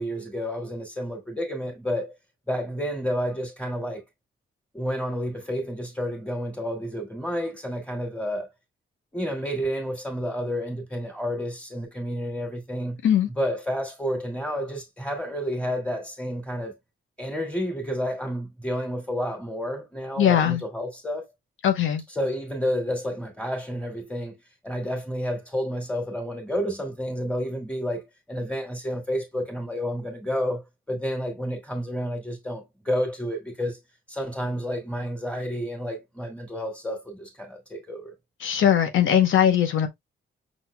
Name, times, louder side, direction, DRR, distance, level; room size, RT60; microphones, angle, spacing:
voice 1, 0.0-2.1 2.5-4.0 4.7-8.5 9.1-13.0 13.4-16.8 17.2-21.3 22.1-24.4 24.6-33.8 34.1-38.1, equal, 5° left, 2.3 m, -30 dB
voice 2, 20.2-20.6 21.6-22.0 38.4-39.9, left 9 dB, 75° left, 0.9 m, -20 dB
6.1 x 3.9 x 2.2 m
cardioid pair, 125°, 21 cm